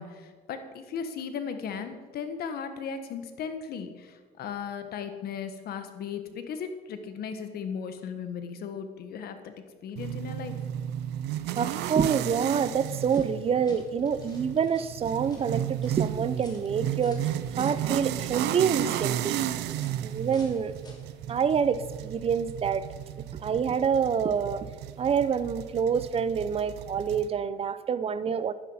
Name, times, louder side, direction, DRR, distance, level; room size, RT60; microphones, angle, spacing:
voice 1, 0.0-9.5 9.8-10.6, left 6 dB, 65° left, 1.4 m, -36 dB
sound 1, 10.0-27.3, right 11 dB, 80° right, 0.6 m, -33 dB
voice 2, 11.5-17.3 17.6-19.5 20.0-20.7 21.3-22.9 23.3-24.7 25.0-28.5, right 7 dB, 35° right, 0.6 m, -27 dB
sound 2, 11.9-21.2, left 2 dB, 25° left, 2.9 m, -55 dB
11.0 x 9.8 x 5.7 m
cardioid pair, 110°, 17 cm